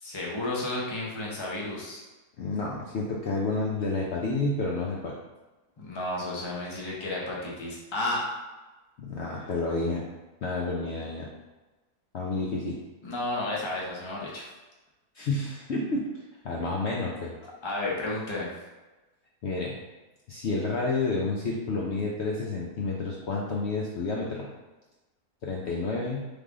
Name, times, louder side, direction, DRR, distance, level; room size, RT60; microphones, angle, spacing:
voice 1, 0.0-2.0 5.8-8.3 13.0-14.5 17.6-18.5, left 2 dB, 25° left, -4 dB, 0.6 m, -32 dB
voice 2, 2.4-5.1 9.0-10.0 10.4-11.3 12.1-12.8 15.1-16.1 16.4-17.3 19.4-19.8 20.3-24.5 25.4-26.2, left 3 dB, 65° left, -2 dB, 0.6 m, -30 dB
3.5 x 3.4 x 3.7 m, 1.1 s
omnidirectional pair, 1.7 m